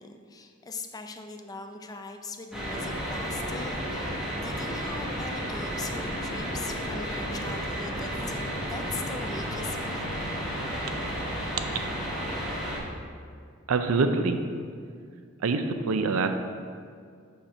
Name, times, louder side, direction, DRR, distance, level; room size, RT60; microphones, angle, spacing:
voice 1, 0.0-10.1, left 3 dB, 20° left, 5 dB, 0.4 m, -41 dB
sound 1, 2.5-12.8, equal, ahead, 1.4 m, -32 dB
voice 2, 13.7-14.4 15.4-16.4, right 4 dB, 85° right, 8 dB, 0.5 m, -25 dB
5.6 x 4.3 x 6.0 m, 2.2 s
head